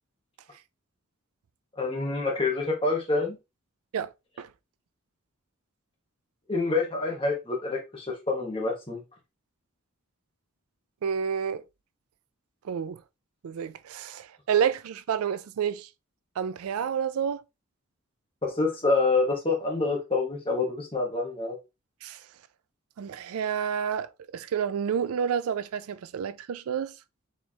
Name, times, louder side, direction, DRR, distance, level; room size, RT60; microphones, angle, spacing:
voice 1, 1.8-3.4 6.5-9.0 18.4-21.6, left 3 dB, 25° left, 1.3 m, -27 dB
voice 2, 11.0-11.6 12.6-13.0 13.4-15.9 16.4-17.4 22.0-22.2 23.0-26.9, right 7 dB, 85° right, 0.4 m, -29 dB
4.4 x 3.4 x 2.9 m
head